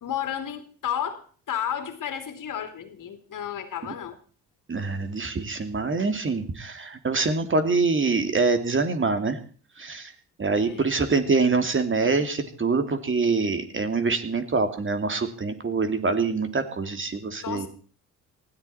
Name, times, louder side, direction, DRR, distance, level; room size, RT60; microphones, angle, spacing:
voice 1, 0.0-4.2 10.5-10.9 17.4-17.7, left 9 dB, 50° left, 8 dB, 3.1 m, -32 dB
voice 2, 4.7-9.4 9.8-10.1 10.4-17.7, right 4 dB, 30° right, 8 dB, 2.7 m, -25 dB
19.0 x 14.0 x 4.3 m, 0.42 s
hypercardioid pair, 65°, 39 cm